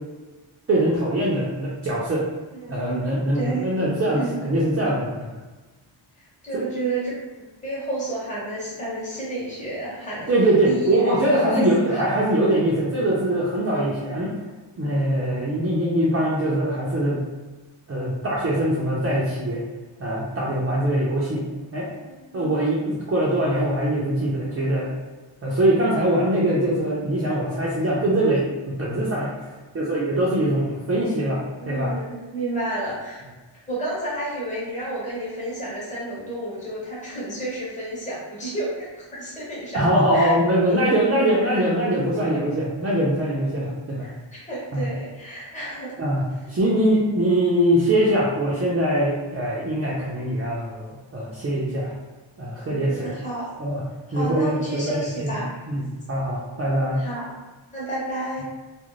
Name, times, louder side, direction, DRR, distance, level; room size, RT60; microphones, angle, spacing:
voice 1, 0.7-2.2 2.7-5.3 6.5-6.6 10.3-14.3 14.8-17.2 17.9-19.6 20.0-21.4 21.7-21.9 22.3-24.9 25.4-29.5 29.7-31.4 31.6-31.9 39.7-44.1 44.7-44.8 46.0-46.2 46.5-51.9 52.4-53.1 53.6-53.8 54.1-55.3 55.7-57.0, right 1 dB, 30° right, -7 dB, 0.5 m, -22 dB
voice 2, 2.5-3.1 3.3-3.7 4.1-4.3 6.2-10.3 10.6-11.6 11.9-12.0 22.0-22.6 31.6-33.2 33.7-40.3 40.7-40.8 44.0-45.9 46.4-46.6 52.7-53.5 54.1-55.6 56.8-57.3 57.7-58.4, right 2 dB, 15° left, -7 dB, 0.9 m, -31 dB
2.5 x 2.0 x 3.0 m, 1.2 s
wide cardioid pair, 105°, 47 cm